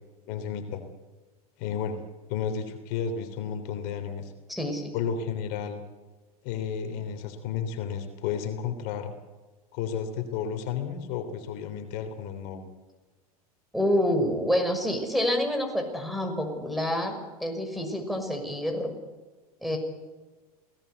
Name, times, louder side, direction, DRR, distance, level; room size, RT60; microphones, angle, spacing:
voice 1, 0.3-0.8 1.6-2.0 2.3-4.3 4.9-5.8 6.4-9.1 9.7-12.6, left 7 dB, 55° left, 7 dB, 3.4 m, -32 dB
voice 2, 4.5-4.9 13.7-18.9 19.6-19.8, equal, ahead, 5 dB, 6.3 m, -27 dB
28.0 x 18.0 x 8.3 m, 1.2 s
hypercardioid pair, 100°, 19 cm